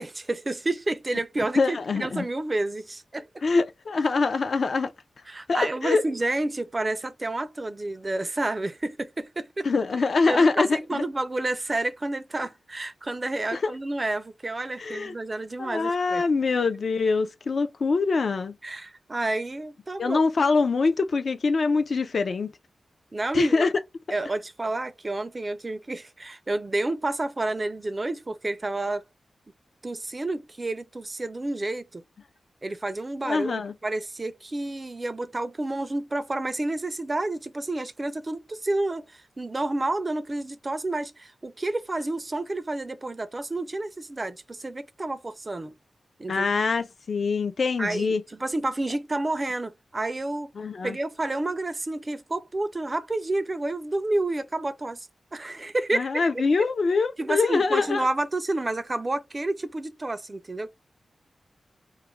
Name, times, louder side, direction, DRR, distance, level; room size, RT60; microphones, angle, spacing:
voice 1, 0.0-3.3 5.3-9.7 10.3-16.2 18.6-20.2 23.1-23.7 24.1-29.0 29.8-32.0 32.6-45.7 46.2-46.5 47.8-50.5 50.8-56.1 56.6-56.7 57.2-60.7, right 2 dB, 30° right, 0.3 m, -30 dB
voice 2, 1.6-2.3 3.4-4.9 5.5-6.0 9.6-11.0 13.5-13.7 14.8-15.1 15.6-18.5 20.0-22.5 23.3-23.7 33.2-33.7 46.3-48.2 50.6-51.0 55.9-58.1, left 4 dB, 60° left, 0.3 m, -24 dB
2.3 x 2.1 x 3.0 m
wide cardioid pair, 100°, 0 cm